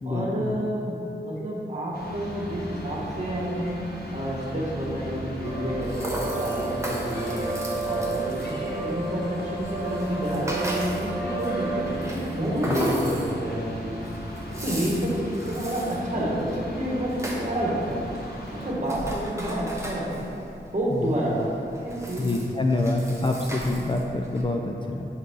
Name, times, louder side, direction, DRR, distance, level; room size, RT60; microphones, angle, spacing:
voice 1, 0.0-3.8 4.1-7.5 7.8-14.0 14.6-18.1 18.5-20.2 20.7-22.3, right 1 dB, 40° right, -6 dB, 1.4 m, -29 dB
sound 1, 1.9-18.7, equal, 55° left, 1.0 m, -37 dB
sound 2, 5.4-12.0, right 3 dB, 70° left, 1.5 m, -32 dB
Rattle (instrument), 5.4-24.4, right 1 dB, 15° right, 0.8 m, -36 dB
voice 2, 22.2-25.1, left 2 dB, 25° left, 1 dB, 0.4 m, -26 dB
7.0 x 3.9 x 3.4 m, 2.7 s
wide cardioid pair, 75°, 19 cm